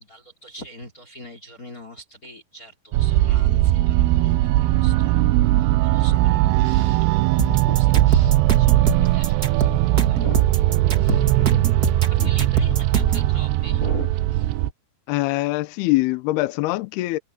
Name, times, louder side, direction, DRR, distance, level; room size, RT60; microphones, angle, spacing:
voice 1, 0.0-10.5 10.9-11.2 12.1-14.5, left 1 dB, 20° left, 4.1 m, -41 dB
sound 1, 2.9-14.7, right 16 dB, 85° right, 2.7 m, -19 dB
sound 2, 7.4-13.3, right 4 dB, 60° right, 0.9 m, -26 dB
voice 2, 11.1-11.7 12.2-12.3 12.7-12.8 15.1-17.2, left 20 dB, 80° left, 2.7 m, -24 dB
omnidirectional pair, 4.8 m